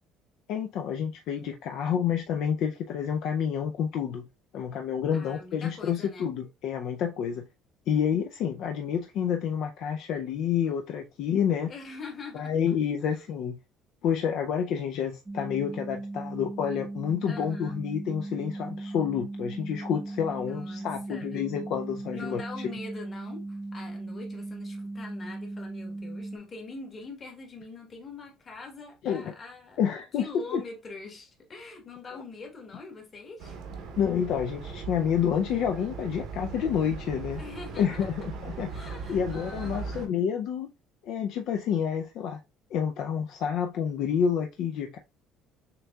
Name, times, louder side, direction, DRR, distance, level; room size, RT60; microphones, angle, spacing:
voice 1, 0.5-4.3 4.5-7.5 7.9-11.7 12.3-13.6 14.0-22.4 29.0-29.3 29.8-30.3 30.5-30.6 34.0-37.4 37.8-38.7 39.1-40.7 41.0-42.4 42.7-45.0, left 8 dB, 55° left, 0.4 m, -29 dB
voice 2, 5.1-6.3 11.7-12.8 13.1-13.2 17.2-17.8 20.3-21.4 22.1-29.8 30.1-33.6 37.4-38.1 38.5-40.1, left 3 dB, 25° left, 1.2 m, -44 dB
sound 1, 15.3-26.4, right 2 dB, 10° right, 0.4 m, -38 dB
sound 2, 33.4-40.1, right 5 dB, 60° right, 0.8 m, -39 dB
6.5 x 2.7 x 2.3 m
cardioid pair, 165°, 0 cm